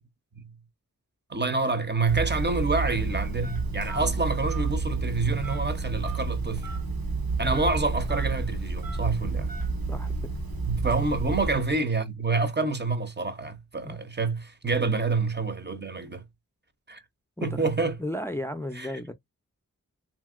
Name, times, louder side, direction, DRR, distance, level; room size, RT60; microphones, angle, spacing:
voice 1, 1.3-6.7 7.4-9.5 10.7-16.2 16.9-17.0 17.4-18.0 18.7-18.9, right 3 dB, 30° right, 0.7 m, -27 dB
Telephone, 2.1-11.8, right 3 dB, 85° right, 1.1 m, -30 dB
voice 2, 17.4-17.7 18.0-19.1, left 1 dB, 5° left, 0.5 m, -34 dB
2.8 x 2.8 x 2.4 m
cardioid pair, 45°, 35 cm